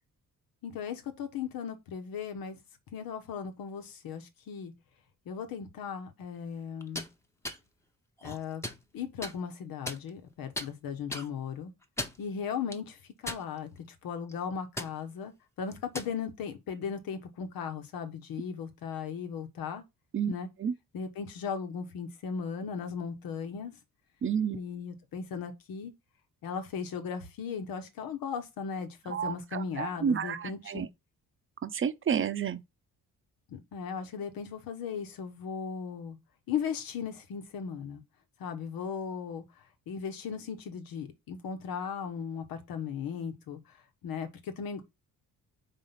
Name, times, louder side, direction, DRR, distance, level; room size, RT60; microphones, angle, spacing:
voice 1, 0.6-2.6 2.9-4.7 5.2-7.1 8.2-8.6 8.9-11.7 12.2-13.7 14.0-19.8 20.3-20.5 20.9-23.8 24.5-25.9 26.4-30.9 33.5-36.2 36.5-38.0 38.4-43.8 44.0-44.8, left 6 dB, 85° left, 1.3 m, -37 dB
sound 1, 6.8-7.1 7.4-7.6 8.2-8.8 9.2-9.3 9.9-10.3 10.6-10.7 11.1-11.3 11.8-12.2 12.7-12.8 13.3-13.8 14.1-14.3 14.8-14.9 15.7-16.1, left 1 dB, 10° left, 0.9 m, -37 dB
voice 2, 24.2-24.6 29.1-30.9 31.6-32.6, right 7 dB, 35° right, 0.7 m, -30 dB
4.9 x 3.7 x 5.7 m
cardioid pair, 105°, 34 cm